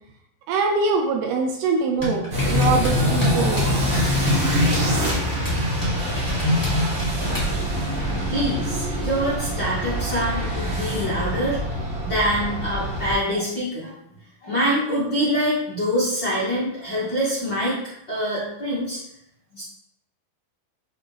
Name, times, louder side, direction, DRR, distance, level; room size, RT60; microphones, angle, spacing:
voice 1, 0.5-3.7, right 4 dB, 80° right, 2 dB, 2.6 m, -23 dB
sound 1, 2.0-7.5, left 1 dB, 5° left, 1.7 m, -26 dB
sound 2, 2.3-13.1, equal, 40° right, 2.4 m, -25 dB
voice 2, 8.3-11.6 12.0-13.9 14.4-17.8 18.1-19.0 19.5-19.6, equal, 45° left, -9 dB, 1.5 m, -25 dB
10.5 x 4.3 x 3.4 m, 0.77 s
omnidirectional pair, 5.1 m